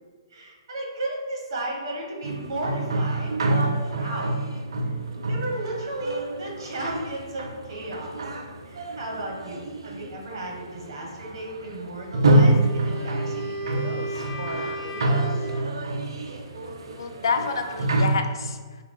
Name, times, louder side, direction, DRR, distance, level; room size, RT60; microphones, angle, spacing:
voice 1, 0.3-4.4 5.3-8.2 8.6-15.3, right 1 dB, 60° right, 0 dB, 1.2 m, -34 dB
sound 1, 2.2-18.2, right 2 dB, 80° right, 0.5 m, -27 dB
Wind instrument woodwind instrument, 12.2-15.7, right 1 dB, 20° left, 0.6 m, -34 dB
voice 2, 17.0-18.8, left 5 dB, 70° left, 5 dB, 0.5 m, -28 dB
4.6 x 2.4 x 3.7 m, 1.4 s
hypercardioid pair, 140°, 2 cm